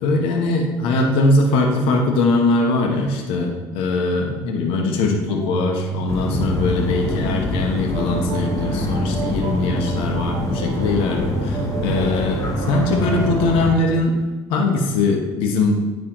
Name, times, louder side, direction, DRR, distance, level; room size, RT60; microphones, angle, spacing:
voice 1, 0.0-14.1 14.5-15.7, left 3 dB, 75° left, 2 dB, 1.2 m, -21 dB
sound 1, 5.3-14.0, right 10 dB, 55° right, 0.7 m, -31 dB
sound 2, 6.1-13.7, left 1 dB, 35° left, 1.5 m, -25 dB
9.9 x 3.4 x 3.9 m, 1.2 s
supercardioid pair, 80°, 9 cm